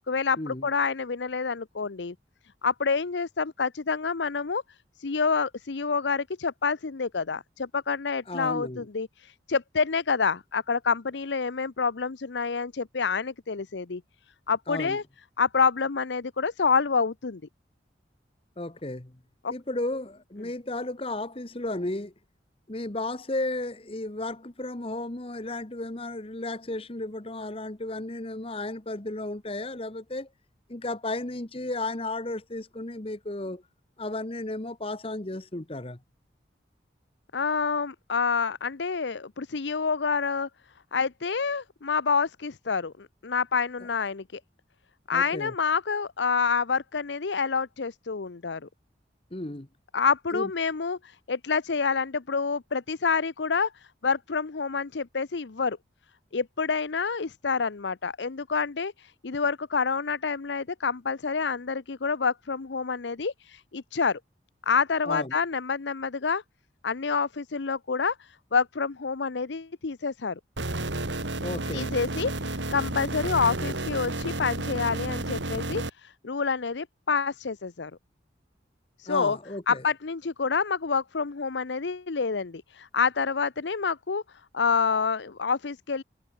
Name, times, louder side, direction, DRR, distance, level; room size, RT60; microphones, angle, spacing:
voice 1, 0.0-2.1 2.6-4.6 5.0-14.0 14.5-15.0 15.4-17.4 19.4-19.5 37.3-40.5 40.9-44.4 45.1-48.7 49.9-55.8 56.3-64.2 64.7-66.4 66.8-70.4 71.7-77.9 79.0-79.4 79.7-84.2 84.5-86.0, left 5 dB, 80° left, 0.7 m, -28 dB
voice 2, 8.3-8.9 14.7-15.0 18.6-19.2 19.5-22.1 22.7-30.3 30.7-33.6 34.0-36.0 45.1-45.5 49.3-49.7 50.3-50.5 65.1-65.4 71.4-72.0 79.1-79.8, left 2 dB, 30° left, 1.3 m, -34 dB
sound 1, 70.6-75.9, right 2 dB, 90° right, 3.5 m, -31 dB
head